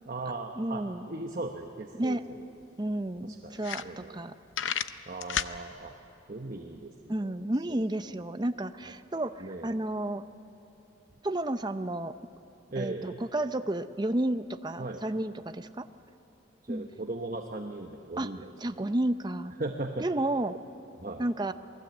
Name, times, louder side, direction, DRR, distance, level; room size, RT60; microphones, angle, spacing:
voice 1, 0.1-2.2 3.2-4.2 5.1-5.9 6.3-7.4 9.4-9.7 12.7-13.2 14.8-15.0 16.6-18.9 19.6-20.1 21.0-21.3, right 2 dB, 40° right, 3 dB, 1.1 m, -38 dB
voice 2, 0.6-1.1 1.9-2.2 2.8-4.3 7.1-10.3 11.2-12.1 12.8-15.9 16.7-16.9 18.2-18.3 18.6-19.5 20.0-20.5 21.2-21.5, right 1 dB, 20° right, 10 dB, 0.6 m, -31 dB
sound 1, 2.2-2.3 2.6-2.7 3.2-3.3 3.6-4.2 4.5-5.6, left 9 dB, 70° left, 0.7 m, -31 dB
28.0 x 20.0 x 8.0 m, 2.9 s
head